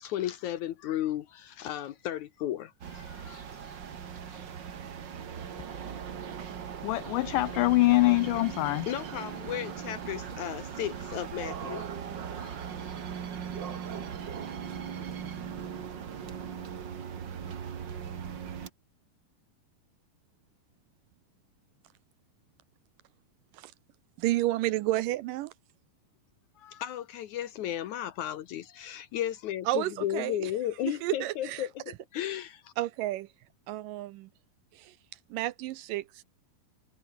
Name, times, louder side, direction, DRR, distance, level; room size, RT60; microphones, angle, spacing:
voice 1, 0.0-3.8 4.3-4.4 8.9-11.9 12.4-12.9 26.6-32.7, left 12 dB, 70° left, 2.0 m, -35 dB
sound 1, 2.8-18.7, right 7 dB, 50° right, 1.3 m, -39 dB
voice 2, 6.8-8.9, left 20 dB, 85° left, 1.8 m, -24 dB
voice 3, 24.2-25.5 29.7-30.5 30.9-31.7 32.8-33.3 33.7-34.3 34.7-35.0 35.3-36.2, right 16 dB, 80° right, 2.1 m, -31 dB
omnidirectional pair, 4.3 m